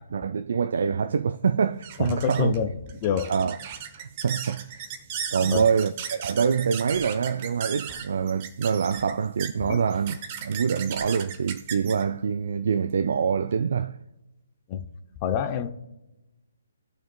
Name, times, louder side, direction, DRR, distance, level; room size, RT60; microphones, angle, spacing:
voice 1, 0.0-2.5 3.3-3.6 4.0-4.8 5.3-14.0, right 6 dB, 55° right, 0.3 m, -25 dB
sound 1, 0.7-13.6, right 8 dB, 30° right, 1.0 m, -38 dB
voice 2, 2.0-3.3 5.4-5.7 9.7-9.8 14.7-14.8 15.2-15.7, left 8 dB, 25° left, 0.7 m, -27 dB
sound 2, 6.9-7.1 7.8-8.1 8.9-9.1 9.9-10.1 10.9-11.1, equal, ahead, 1.4 m, -50 dB
18.5 x 6.3 x 2.3 m
figure-of-eight pair, 135°, 0 cm